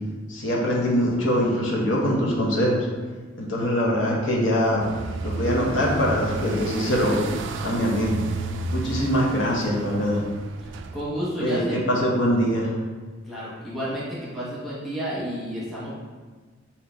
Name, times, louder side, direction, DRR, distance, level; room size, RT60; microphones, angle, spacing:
voice 1, 0.3-2.9 3.4-4.8 5.2-7.3 7.6-8.2 8.7-10.2 11.4-12.7, equal, 75° left, -3 dB, 0.8 m, -23 dB
sound 1, 4.8-11.0, right 3 dB, 65° right, 0.3 m, -32 dB
voice 2, 10.6-11.9 13.2-15.9, equal, ahead, -9 dB, 1.1 m, -31 dB
3.7 x 2.9 x 4.5 m, 1.4 s
head